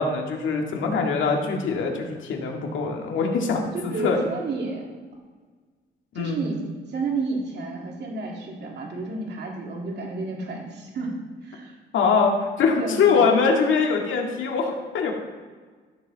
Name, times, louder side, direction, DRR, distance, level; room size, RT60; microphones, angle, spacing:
voice 1, 0.0-4.2 6.1-6.4 11.9-15.1, left 5 dB, 75° left, 1 dB, 2.0 m, -23 dB
voice 2, 3.7-4.8 6.1-11.1 11.4-11.7 12.8-13.3, right 3 dB, 60° right, -1 dB, 2.5 m, -31 dB
14.0 x 6.9 x 4.1 m, 1.5 s
cardioid pair, 90°, 20 cm